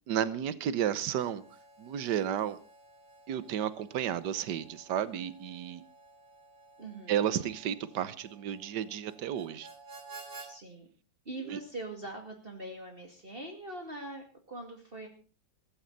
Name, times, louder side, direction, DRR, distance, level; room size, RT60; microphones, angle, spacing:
voice 1, 0.1-1.4 1.8-2.6 3.3-5.8 7.1-9.7 11.5-11.6, right 10 dB, 65° right, 16 dB, 1.6 m, -32 dB
Harmonica, 1.0-10.5, right 3 dB, 50° right, 3.6 m, -53 dB
voice 2, 6.8-7.2 10.4-10.9 11.2-15.1, right 2 dB, 30° right, 3 dB, 2.6 m, -42 dB
16.0 x 14.5 x 4.0 m, 0.36 s
omnidirectional pair, 2.1 m